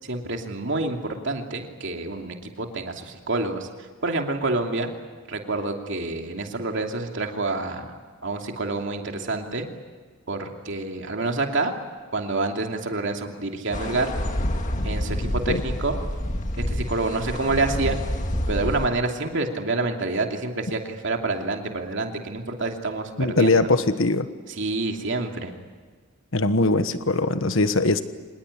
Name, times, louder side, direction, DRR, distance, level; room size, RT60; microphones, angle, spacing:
voice 1, 0.0-1.0 1.2-3.7 4.0-4.9 5.3-7.9 8.2-9.7 10.3-11.7 12.1-14.1 14.8-16.0 16.7-18.0 18.5-23.7 24.6-25.5, right 2 dB, 55° right, 3 dB, 2.8 m, -27 dB
sound 1, 13.7-18.9, left 1 dB, 35° left, 1.8 m, -28 dB
voice 2, 23.2-24.3 26.3-28.0, left 2 dB, 65° left, 10 dB, 1.3 m, -21 dB
26.0 x 20.0 x 10.0 m, 1.5 s
head